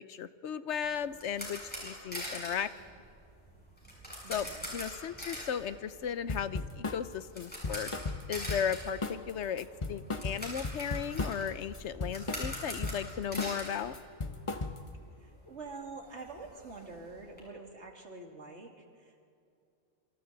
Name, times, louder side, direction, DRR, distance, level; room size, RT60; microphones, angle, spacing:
voice 1, 0.1-2.7 4.3-4.5 4.7-7.9 8.3-13.9, left 8 dB, 80° left, 14 dB, 1.1 m, -36 dB
sound 1, 0.7-14.7 15.0-15.1 15.5-15.6 15.9-17.4, equal, 10° left, 6.9 m, -44 dB
voice 2, 4.2-4.7 15.2-19.2, right 3 dB, 75° right, 2 dB, 2.8 m, -46 dB
sound 2, 6.3-7.0 7.4-8.8 9.0-9.3 9.6-11.5 11.7-13.0 13.4-13.7 13.9-15.0, left 3 dB, 30° left, 1.0 m, -36 dB
27.0 x 25.5 x 4.0 m, 2.5 s
omnidirectional pair, 1.2 m